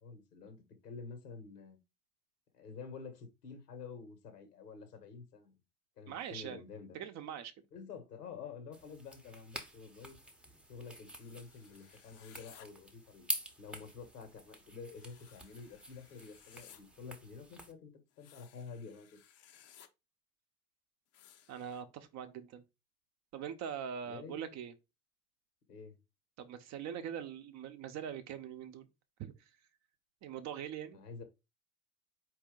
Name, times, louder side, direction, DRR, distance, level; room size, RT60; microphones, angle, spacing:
voice 1, 0.0-0.6 0.8-1.8 2.5-5.5 6.0-7.0 7.7-10.2 10.7-13.3 13.6-19.2 24.0-24.4 25.7-26.0 30.9-31.2, left 5 dB, 80° left, 1.4 m, -49 dB
voice 2, 6.1-6.6 6.9-7.5 21.5-22.6 23.3-24.7 26.4-28.9 29.2-29.3 30.2-31.0, right 8 dB, 35° right, 0.7 m, -42 dB
sound 1, 8.7-17.7, right 1 dB, ahead, 0.7 m, -47 dB
sound 2, 11.0-12.7 14.9-16.8 18.1-19.9 21.1-21.8, left 10 dB, 35° left, 0.6 m, -60 dB
4.4 x 2.8 x 3.8 m
hypercardioid pair, 80°, 46 cm